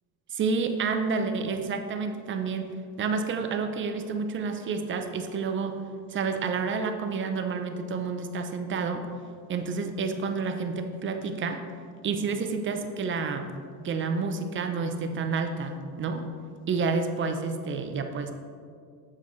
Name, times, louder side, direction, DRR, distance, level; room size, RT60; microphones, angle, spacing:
voice 1, 0.3-2.7 3.0-5.8 6.1-9.1 9.5-11.6 12.0-13.5 13.8-16.3 16.7-18.3, right 4 dB, 25° right, 7 dB, 0.6 m, -29 dB
8.1 x 7.6 x 3.2 m, 2.2 s
supercardioid pair, 125°, 44 cm